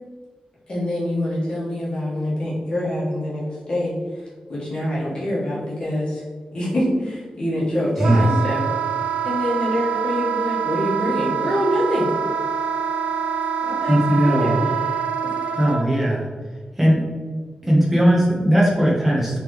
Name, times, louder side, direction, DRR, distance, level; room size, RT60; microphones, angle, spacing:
voice 1, 0.7-6.2 6.5-8.6 9.2-12.1 13.6-14.6 15.2-15.3, left 1 dB, 40° left, -7 dB, 1.3 m, -25 dB
Wind instrument woodwind instrument, 8.0-15.8, right 8 dB, 70° right, 0.3 m, -25 dB
voice 2, 13.9-14.6 15.6-16.3 16.8-17.0 17.6-19.4, right 1 dB, 10° right, -5 dB, 1.0 m, -18 dB
4.2 x 3.4 x 3.0 m, 1.5 s
wide cardioid pair, 180°, 2 cm